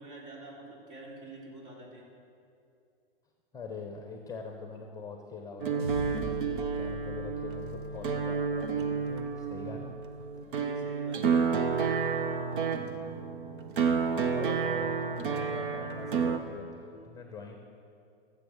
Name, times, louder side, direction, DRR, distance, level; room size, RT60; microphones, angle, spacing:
voice 1, 0.0-2.1 10.6-11.9, right 2 dB, 40° right, -2 dB, 3.7 m, -47 dB
voice 2, 3.5-10.0 14.3-17.6, left 4 dB, 10° left, 3 dB, 1.1 m, -43 dB
sound 1, 5.6-16.4, right 6 dB, 55° right, 1.1 m, -30 dB
sound 2, 5.8-10.4, equal, 90° right, 3.7 m, -43 dB
15.0 x 7.5 x 6.6 m, 2.5 s
figure-of-eight pair, 110°, 30 cm